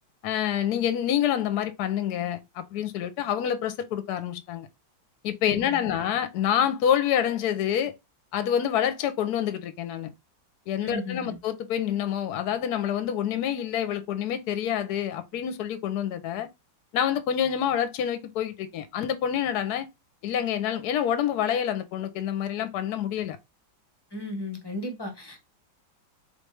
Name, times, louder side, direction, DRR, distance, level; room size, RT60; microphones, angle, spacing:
voice 1, 0.2-4.7 5.2-7.9 8.3-10.1 10.7-16.5 16.9-19.9 20.2-23.4, left 9 dB, 65° left, 1.1 m, -27 dB
voice 2, 5.5-6.0 10.8-11.4 24.1-25.4, left 1 dB, 20° left, 0.7 m, -35 dB
4.1 x 3.3 x 3.2 m
omnidirectional pair, 2.1 m